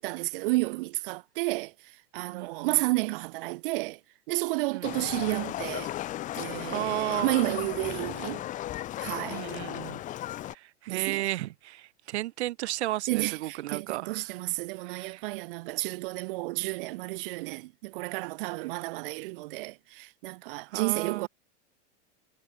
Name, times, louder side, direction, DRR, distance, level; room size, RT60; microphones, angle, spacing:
voice 1, 0.0-1.7 2.1-4.0 4.3-5.9 6.3-8.4 9.0-9.4 10.9-11.3 13.1-21.3, right 22 dB, 50° right, 0.7 m, -31 dB
voice 2, 2.3-2.8 4.7-5.1 6.7-7.3 9.3-10.0 10.5-14.2 14.8-15.2 20.7-21.3, right 16 dB, 70° right, 2.9 m, -34 dB
Livestock farm animals working animals, 4.8-10.5, left 14 dB, 20° left, 1.0 m, -36 dB
supercardioid pair, 160°, 35 cm